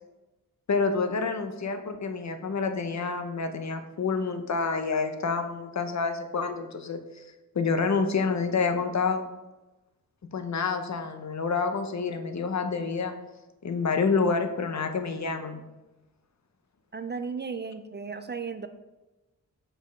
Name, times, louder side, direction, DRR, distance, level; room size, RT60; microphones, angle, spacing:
voice 1, 0.7-7.3 7.5-9.2 10.3-13.1 13.6-15.6, left 4 dB, 55° left, 7 dB, 0.8 m, -28 dB
voice 2, 16.9-18.7, right 5 dB, 30° right, 10 dB, 0.4 m, -35 dB
6.2 x 5.3 x 5.1 m, 1.1 s
wide cardioid pair, 125°, 34 cm